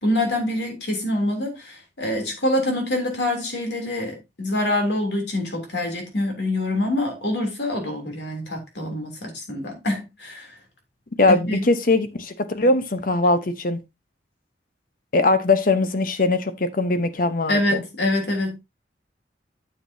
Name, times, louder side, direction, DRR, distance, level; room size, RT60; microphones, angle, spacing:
voice 1, 0.0-10.5 11.5-11.6 17.5-18.6, left 1 dB, 70° left, 3.1 m, -25 dB
voice 2, 11.2-13.8 15.1-17.8, left 2 dB, 50° left, 0.9 m, -21 dB
9.0 x 7.5 x 2.8 m
head